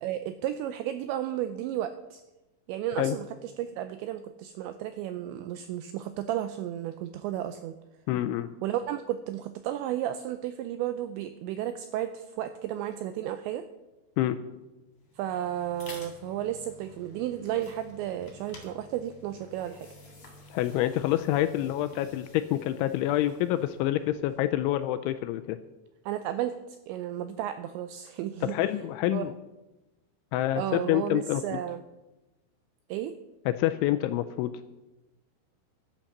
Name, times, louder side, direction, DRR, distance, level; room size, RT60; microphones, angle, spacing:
voice 1, 0.0-2.2 2.7-7.8 8.6-13.6 15.2-19.9 26.1-28.6 29.1-29.3 30.6-31.8 32.9-33.1, right 11 dB, 85° right, 10 dB, 2.5 m, -33 dB
voice 2, 8.1-8.5 14.2-14.4 20.5-25.6 28.4-29.3 30.3-31.6 33.5-34.5, left 13 dB, 85° left, 10 dB, 2.8 m, -27 dB
sound 1, 15.0-24.9, left 2 dB, 30° left, 3.2 m, -51 dB
12.0 x 10.0 x 7.2 m, 1.0 s
omnidirectional pair, 5.8 m